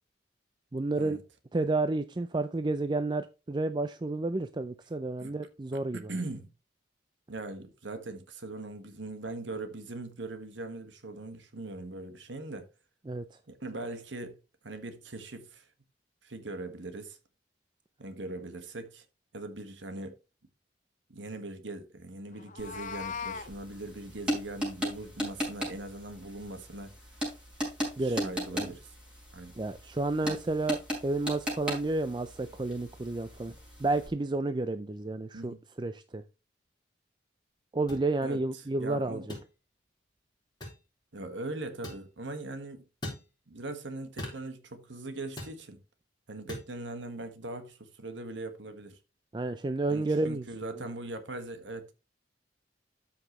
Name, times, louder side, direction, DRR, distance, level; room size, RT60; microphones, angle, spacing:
voice 1, 0.7-1.2 1.5-6.1 13.1-13.4 28.0-28.7 29.6-33.5 33.8-36.2 37.7-39.2 49.3-50.4 50.8-50.9, right 2 dB, 25° right, 0.4 m, -31 dB
voice 2, 5.9-6.5 7.3-12.7 13.5-14.4 14.6-15.7 16.2-17.2 18.0-19.0 19.3-20.2 21.1-26.9 28.0-28.9 29.3-29.5 30.2-30.4 35.3-35.6 38.2-38.4 38.8-39.2 41.1-42.8 43.5-45.8 46.3-49.0 49.9-51.9, right 2 dB, 80° right, 1.5 m, -40 dB
Meow, 22.4-23.5, left 6 dB, 40° left, 0.6 m, -38 dB
sound 1, 22.6-34.1, equal, 5° right, 5.0 m, -38 dB
sound 2, 37.9-38.0 39.3-39.5 40.6-40.8 41.8-42.1 43.0-43.3 44.2-44.4 45.4-45.6 46.5-46.7, left 1 dB, 25° left, 3.8 m, -40 dB
13.0 x 5.9 x 3.0 m
head